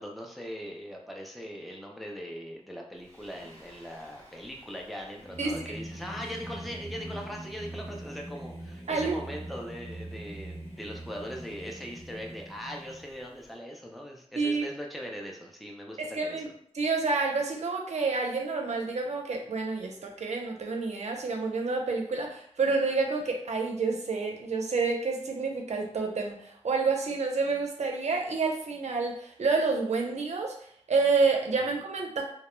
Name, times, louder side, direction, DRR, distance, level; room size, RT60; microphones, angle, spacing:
voice 1, 0.0-16.5, equal, ahead, 0 dB, 0.4 m, -40 dB
Singing, 3.0-13.5, right 1 dB, 30° right, 0.9 m, -43 dB
voice 2, 16.0-16.5 16.7-30.6 30.9-32.2, right 4 dB, 80° right, 2 dB, 0.5 m, -28 dB
2.2 x 2.0 x 3.0 m, 0.63 s
wide cardioid pair, 85°, 11 cm